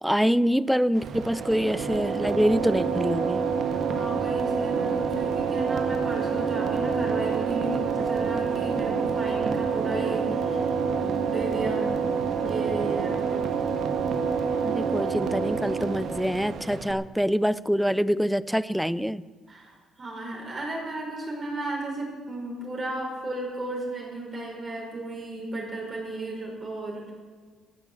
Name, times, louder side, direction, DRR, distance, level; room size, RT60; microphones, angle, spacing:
voice 1, 0.0-3.5 14.6-19.2, equal, ahead, 18 dB, 0.4 m, -25 dB
sound 1, 0.9-16.9, right 6 dB, 55° right, 1.4 m, -27 dB
voice 2, 3.7-10.6 11.0-11.9 12.4-13.4 19.5-27.1, right 2 dB, 30° right, -1 dB, 4.9 m, -34 dB
14.0 x 10.0 x 7.9 m, 1.5 s
cardioid pair, 140°, 0 cm